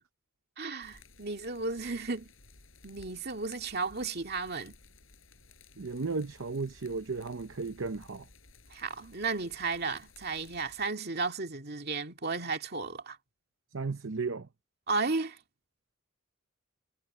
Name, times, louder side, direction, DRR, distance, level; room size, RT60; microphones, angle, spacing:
voice 1, 0.6-2.3 2.8-4.7 8.7-13.2 14.9-15.4, right 4 dB, 50° right, 2.2 m, -34 dB
sound 1, 0.8-10.9, left 3 dB, 65° left, 6.9 m, -57 dB
voice 2, 5.8-8.3 13.7-14.5, right 4 dB, 65° right, 0.8 m, -34 dB
head